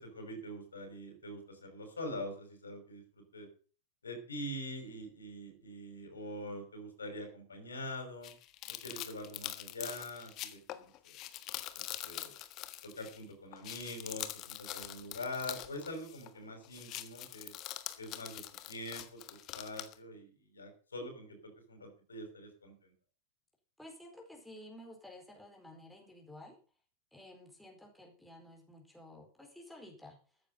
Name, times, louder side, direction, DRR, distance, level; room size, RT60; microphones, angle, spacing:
voice 1, 0.0-3.5 4.0-8.3 8.8-11.2 11.7-12.4 12.8-17.5 18.0-22.9, left 1 dB, 75° left, 5 dB, 5.5 m, -44 dB
sound 1, 8.2-13.2 13.5-16.4 16.6-19.9, left 14 dB, 35° left, 1.4 m, -44 dB
voice 2, 23.8-26.6 27.1-30.2, left 1 dB, ahead, 0 dB, 4.6 m, -52 dB
14.0 x 10.0 x 5.5 m, 0.39 s
figure-of-eight pair, 90°, 0 cm